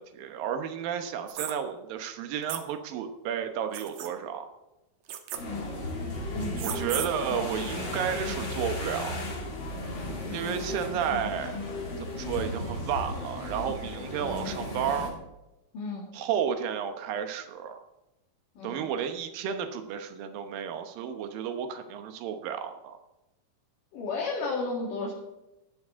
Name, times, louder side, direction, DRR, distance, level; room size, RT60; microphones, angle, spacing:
voice 1, 0.0-4.5 6.6-9.3 10.3-11.6 12.2-15.1 16.1-17.8 18.6-23.0, right 8 dB, 85° right, 7 dB, 2.8 m, -32 dB
sound 1, 1.3-1.5 2.5-2.6 3.7-4.1 5.1-5.4 6.5-7.1, right 10 dB, 65° right, 2.1 m, -34 dB
sound 2, 5.3-15.1, left 2 dB, 35° left, 2.9 m, -35 dB
voice 2, 6.3-6.7 15.7-16.1 18.6-18.9 23.9-25.1, left 3 dB, 70° left, -3 dB, 3.6 m, -33 dB
17.0 x 11.5 x 3.7 m, 0.97 s
omnidirectional pair, 4.0 m